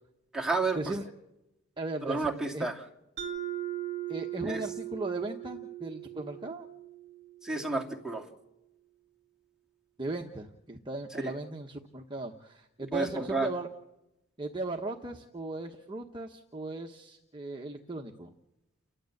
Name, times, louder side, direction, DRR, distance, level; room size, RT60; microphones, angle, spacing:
voice 1, 0.3-0.9 2.0-2.9 4.4-4.6 7.4-8.3 11.2-11.3 12.9-13.5, right 3 dB, 5° right, -1 dB, 2.4 m, -31 dB
voice 2, 1.8-2.7 4.1-6.7 10.0-13.7 14.4-18.3, right 2 dB, 20° right, 2 dB, 1.1 m, -37 dB
Mallet percussion, 3.2-7.7, right 12 dB, 55° right, 2.2 m, -39 dB
30.0 x 12.5 x 7.9 m, 0.90 s
head